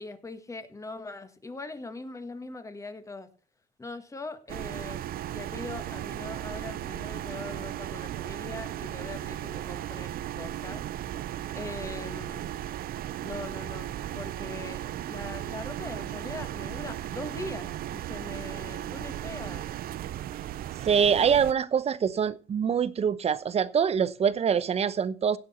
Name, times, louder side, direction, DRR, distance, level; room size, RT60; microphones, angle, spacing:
voice 1, 0.0-3.3 3.8-5.0 5.3-10.8 11.5-12.5 13.2-19.7, left 3 dB, 20° left, 1.6 m, -41 dB
sound 1, 4.5-21.5, right 12 dB, 60° right, 0.6 m, -36 dB
voice 2, 20.8-25.4, right 7 dB, 40° right, 0.8 m, -24 dB
16.5 x 6.2 x 4.3 m
cardioid pair, 110°, 17 cm